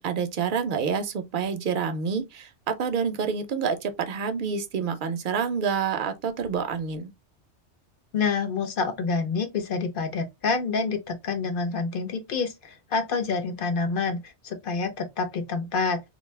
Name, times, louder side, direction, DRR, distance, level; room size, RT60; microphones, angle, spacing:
voice 1, 0.0-7.1, right 6 dB, 60° right, 0.6 m, -28 dB
voice 2, 8.1-16.0, left 4 dB, 55° left, 0.7 m, -27 dB
2.5 x 2.3 x 3.2 m
omnidirectional pair, 1.2 m